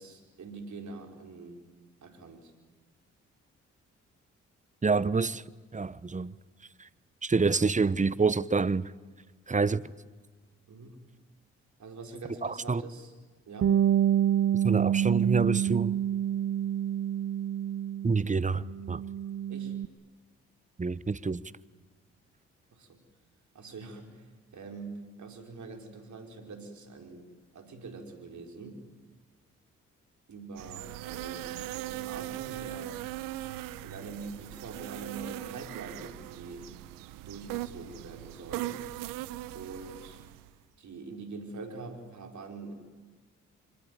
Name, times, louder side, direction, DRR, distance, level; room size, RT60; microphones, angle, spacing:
voice 1, 0.0-1.6 2.0-2.5 8.0-8.2 10.7-11.0 11.8-13.1 13.5-13.8 19.5-19.8 22.7-23.0 23.5-28.8 30.3-33.0 33.8-36.7 37.2-38.8 39.5-40.2 40.8-42.7, right 3 dB, 60° right, 4.9 m, -44 dB
voice 2, 4.8-5.4 5.7-6.3 6.8-6.9 7.2-8.9 9.5-9.9 12.4-12.8 14.6-16.0 18.0-19.0 20.8-21.5, right 4 dB, 20° right, 1.0 m, -27 dB
Bass guitar, 13.6-18.3 18.6-19.9, right 10 dB, 45° right, 0.7 m, -27 dB
sound 1, 30.6-40.5, right 15 dB, 80° right, 0.9 m, -39 dB
25.0 x 22.0 x 9.5 m
hypercardioid pair, 45°, 33 cm